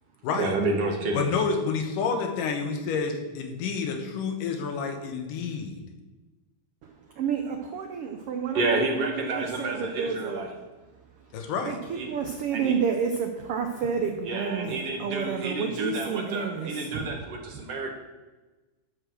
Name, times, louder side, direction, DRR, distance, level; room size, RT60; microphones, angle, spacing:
voice 1, 0.4-1.2 8.5-10.5 11.9-12.1 12.5-12.8 14.2-17.9, right 2 dB, 60° right, 2 dB, 2.1 m, -29 dB
voice 2, 1.1-5.7 11.3-11.8, left 5 dB, 90° left, 5 dB, 2.8 m, -29 dB
voice 3, 6.8-10.5 11.6-17.1, right 6 dB, 80° right, 4 dB, 1.3 m, -30 dB
12.5 x 5.0 x 6.3 m, 1.2 s
omnidirectional pair, 3.7 m